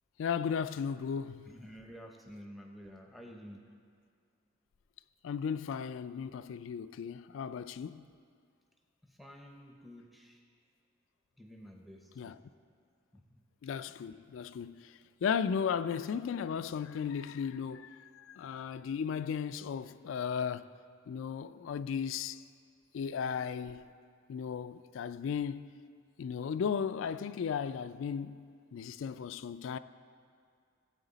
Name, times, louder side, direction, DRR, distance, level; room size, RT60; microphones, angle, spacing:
voice 1, 0.2-1.5 5.2-8.1 12.2-12.4 13.6-20.7 21.1-22.4 22.9-23.8 24.3-25.7 26.2-28.4 28.7-29.8, left 7 dB, 70° left, 0.3 m, -35 dB
voice 2, 1.5-3.6 9.0-10.4 11.4-12.5 13.1-13.4, equal, ahead, 0.7 m, -51 dB
15.0 x 7.9 x 4.0 m
head